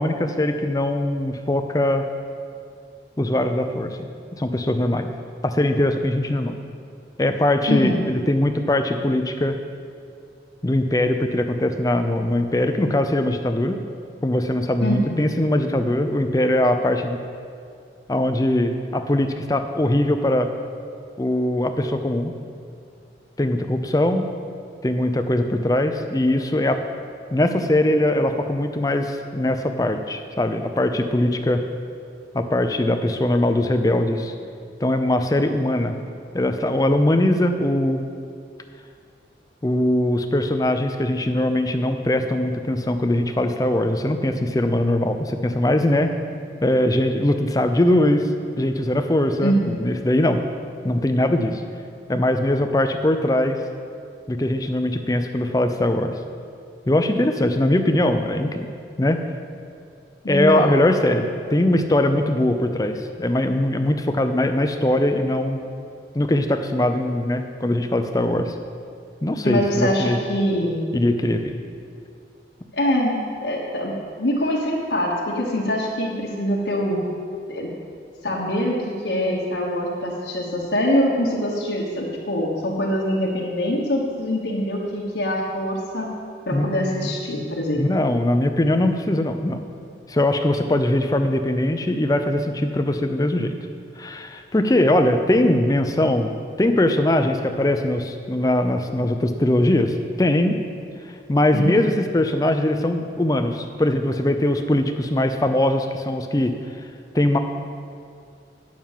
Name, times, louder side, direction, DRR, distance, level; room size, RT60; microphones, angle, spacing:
voice 1, 0.0-2.0 3.2-5.1 5.4-6.6 7.2-9.6 10.6-13.8 14.2-17.2 18.1-20.5 21.2-22.3 23.4-24.3 24.8-26.8 27.3-31.6 32.3-34.3 34.8-36.0 36.3-38.0 39.6-46.1 46.6-48.3 48.6-50.4 50.8-51.6 52.1-53.6 54.3-56.1 56.9-58.7 59.0-59.2 60.3-65.6 66.1-68.5 69.2-70.2 70.9-71.6 86.5-87.1 87.8-89.6 90.1-93.5 94.0-96.3 96.6-100.6 101.3-106.6 107.1-107.4, left 1 dB, 20° left, 7 dB, 0.5 m, -21 dB
voice 2, 14.8-15.2 49.4-49.8 60.2-60.7 69.4-70.8 72.7-73.9 74.2-77.0 77.5-77.7 78.2-86.1 86.5-88.0 95.3-95.4 101.5-101.8, equal, 75° left, -3 dB, 1.3 m, -24 dB
9.0 x 6.2 x 7.3 m, 2.3 s
head